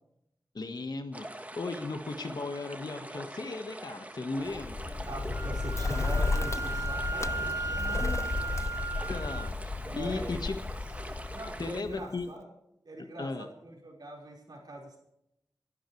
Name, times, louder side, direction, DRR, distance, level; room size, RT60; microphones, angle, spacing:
voice 1, 0.5-4.8 9.1-9.5 9.9-10.5 11.6-12.3 13.2-13.5, left 3 dB, 75° left, 7 dB, 1.6 m, -36 dB
sound 1, 1.1-11.8, right 1 dB, 20° right, 1.5 m, -44 dB
Bird, 4.5-12.3, left 3 dB, 45° left, 0.5 m, -33 dB
voice 2, 5.1-8.3 9.8-10.3 11.3-12.5 12.8-15.0, right 1 dB, 75° right, -1 dB, 5.0 m, -42 dB
Wind instrument woodwind instrument, 5.3-9.5, right 3 dB, 55° right, 0.6 m, -36 dB
29.0 x 11.5 x 3.3 m, 0.81 s
wide cardioid pair, 50°, 7 cm